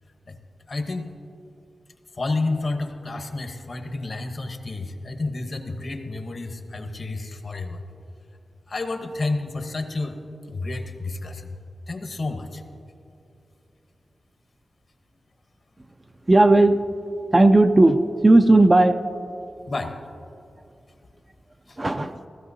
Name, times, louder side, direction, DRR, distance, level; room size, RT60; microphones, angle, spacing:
voice 1, 0.7-1.1 2.1-7.8 8.7-10.2 10.5-11.6 11.9-12.6 19.7-19.9 21.7-21.8, left 2 dB, 50° left, 6 dB, 0.9 m, -30 dB
voice 2, 16.3-16.8 17.3-18.0 18.2-19.0 21.8-22.3, right 2 dB, 25° right, 8 dB, 0.4 m, -15 dB
15.5 x 14.0 x 2.7 m, 2.7 s
wide cardioid pair, 105°, 0 cm